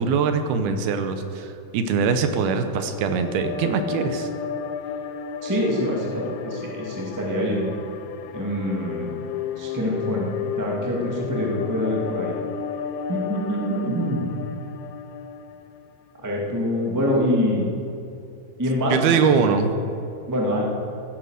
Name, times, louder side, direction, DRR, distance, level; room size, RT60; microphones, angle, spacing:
voice 1, 0.0-4.3 18.9-19.7, right 5 dB, 75° right, 8 dB, 2.7 m, -22 dB
sound 1, 2.7-16.1, left 7 dB, 80° left, 2.4 m, -33 dB
voice 2, 5.4-7.7 8.3-9.1 9.6-10.3 10.6-12.4 13.1-14.3 16.2-17.7 18.6-19.2 20.3-20.6, equal, 20° right, -2 dB, 0.5 m, -25 dB
15.0 x 10.0 x 6.4 m, 2.7 s
omnidirectional pair, 4.6 m